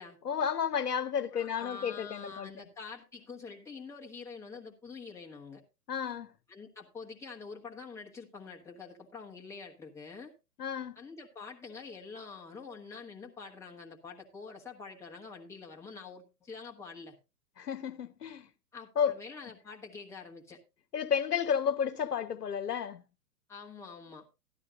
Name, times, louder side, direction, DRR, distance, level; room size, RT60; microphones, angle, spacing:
voice 1, 0.2-2.5 5.9-6.3 10.6-11.0 17.6-18.5 19.0-19.1 20.9-23.0, left 7 dB, 65° left, 1.1 m, -32 dB
voice 2, 1.3-5.6 6.5-10.3 11.0-17.1 18.7-20.6 23.5-24.3, left 4 dB, 5° left, 1.3 m, -46 dB
13.0 x 12.0 x 2.6 m
figure-of-eight pair, 115°, 50 cm